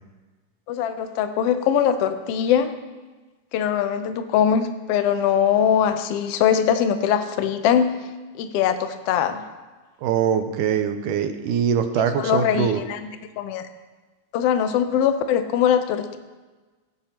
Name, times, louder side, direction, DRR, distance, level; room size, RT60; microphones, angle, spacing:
voice 1, 0.7-2.7 3.5-8.0 8.3-9.4 12.2-13.0 13.4-13.7 14.3-16.2, left 8 dB, 85° left, 9 dB, 1.3 m, -21 dB
voice 2, 10.0-12.8, right 8 dB, 85° right, 7 dB, 2.2 m, -23 dB
17.5 x 9.6 x 2.9 m, 1.3 s
omnidirectional pair, 3.7 m